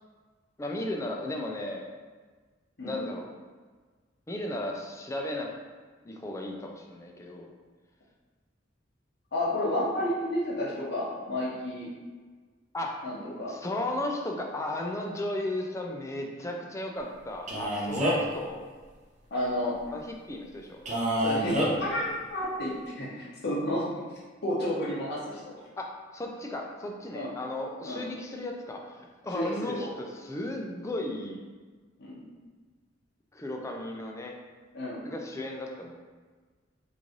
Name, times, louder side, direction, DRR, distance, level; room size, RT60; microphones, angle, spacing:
voice 1, 0.6-1.9 2.8-3.3 4.3-5.5 6.0-7.5 12.7-12.9 13.5-18.6 19.9-20.8 25.8-25.9 26.1-31.4 33.3-34.3 35.0-35.9, left 1 dB, 15° left, 1 dB, 0.4 m, -35 dB
voice 2, 9.3-11.9 13.0-13.5 19.3-19.8 21.2-23.8 24.4-25.4 27.1-27.3 27.8-28.0 29.3-29.9 32.0-32.3 34.7-35.0, left 1 dB, 60° left, -7 dB, 0.9 m, -31 dB
Male speech man speaking, 17.5-18.4 20.9-21.7, equal, 40° right, 0.7 m, -27 dB
3.1 x 2.5 x 3.8 m, 1.4 s
head